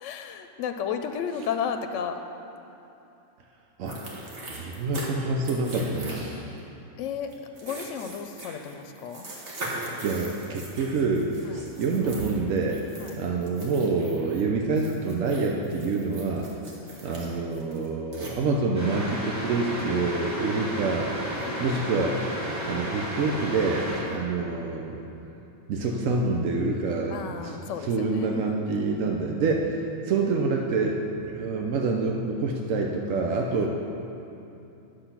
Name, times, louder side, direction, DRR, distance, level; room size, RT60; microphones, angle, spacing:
voice 1, 0.0-2.2 7.0-9.3 11.4-11.6 13.0-13.2 16.7-17.0 21.3-21.8 24.0-24.2 27.1-28.6 28.9-29.2 33.5-33.7, left 7 dB, 75° left, 7 dB, 0.9 m, -34 dB
sound 1, 3.9-5.1 5.4-6.6 7.3-14.4 14.7-18.3, right 1 dB, 65° right, 1.7 m, -40 dB
voice 2, 4.5-6.3 9.5-11.3 11.5-12.8 13.2-16.5 17.0-21.1 21.6-22.2 22.7-25.0 25.7-27.6 27.8-33.7, right 3 dB, 90° right, 1 dB, 1.1 m, -27 dB
sound 2, 18.8-24.0, equal, 15° right, 1.9 m, -32 dB
9.9 x 6.8 x 5.8 m, 2.9 s
omnidirectional pair, 1.3 m